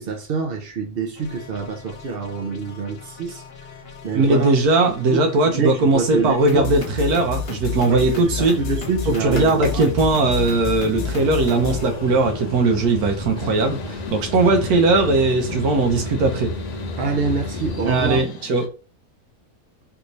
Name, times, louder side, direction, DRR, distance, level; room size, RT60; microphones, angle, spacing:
voice 1, 0.0-3.4 4.0-4.5 5.1-6.6 7.9-9.9 17.0-18.2, right 4 dB, 55° right, 0.7 m, -26 dB
sound 1, 1.2-13.2, left 6 dB, 60° left, 0.6 m, -32 dB
voice 2, 4.1-8.5 9.1-16.5 17.9-18.6, right 3 dB, 90° right, 1.2 m, -19 dB
sound 2, 9.2-18.2, left 2 dB, 35° left, 0.8 m, -32 dB
sound 3, 13.4-18.7, left 7 dB, 85° left, 1.1 m, -40 dB
3.4 x 2.6 x 3.0 m
omnidirectional pair, 1.5 m